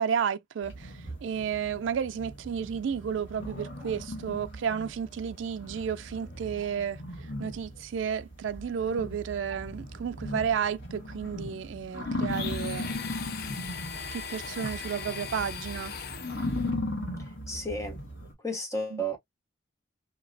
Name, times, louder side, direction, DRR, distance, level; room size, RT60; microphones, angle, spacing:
voice 1, 0.0-7.0 7.4-12.9 14.1-15.9 18.9-19.0, right 7 dB, 75° right, 0.3 m, -32 dB
sound 1, 0.6-18.3, left 1 dB, 80° left, 1.6 m, -38 dB
Domestic sounds home sounds, 12.3-16.7, left 7 dB, 50° left, 0.4 m, -39 dB
voice 2, 17.2-18.0 18.4-19.2, right 1 dB, 15° left, 0.7 m, -33 dB
3.0 x 2.7 x 2.5 m
head